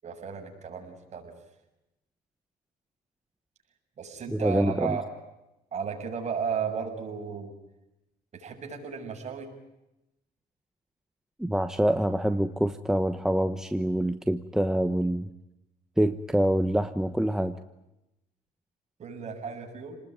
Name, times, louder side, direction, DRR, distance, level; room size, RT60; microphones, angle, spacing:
voice 1, 0.0-1.3 4.0-5.0 5.7-7.5 8.3-9.5 19.0-20.0, right 6 dB, 40° right, 3 dB, 7.3 m, -34 dB
voice 2, 4.3-5.0 11.4-15.3 16.0-17.6, right 1 dB, 5° right, 9 dB, 1.2 m, -26 dB
29.5 x 20.0 x 9.4 m, 0.92 s
cardioid pair, 110°, 17 cm